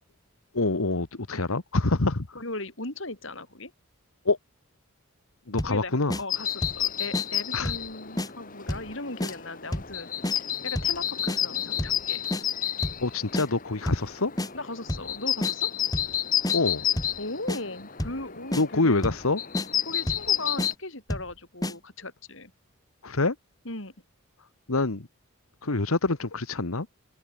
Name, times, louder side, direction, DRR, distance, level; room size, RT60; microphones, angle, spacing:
voice 1, 0.5-2.3 4.2-4.4 5.5-6.2 7.5-7.7 13.0-14.3 16.5-16.8 18.5-19.4 23.0-23.3 24.7-25.1 25.6-26.9, left 3 dB, 80° left, 1.5 m, -26 dB
voice 2, 2.3-3.7 5.6-5.9 6.2-10.1 10.4-12.2 14.5-15.7 17.2-19.1 19.9-22.5 23.6-23.9, left 2 dB, 60° left, 6.4 m, -37 dB
sound 1, 5.6-5.8 6.1-6.2 6.6-6.8 7.1-7.3 7.6-7.9 8.2-8.3 8.7-8.9 9.2-9.3 9.7-9.9 10.2-10.4 10.8-11.0 11.3-11.4 11.8-12.0 12.3-12.4 12.8-13.0 13.3-13.5 13.9-14.1 14.4-14.5 14.9-15.1 15.4-15.5 15.9-16.1 16.4-16.6 17.0-17.2 17.5-17.6 18.0-18.2 18.5-18.6 19.0-19.3 19.5-19.7 20.1-20.3 20.6-20.7 21.1-21.3 21.6-21.7, left 1 dB, 15° left, 1.8 m, -30 dB
sound 2, 6.3-20.7, left 10 dB, 40° left, 2.0 m, -31 dB
head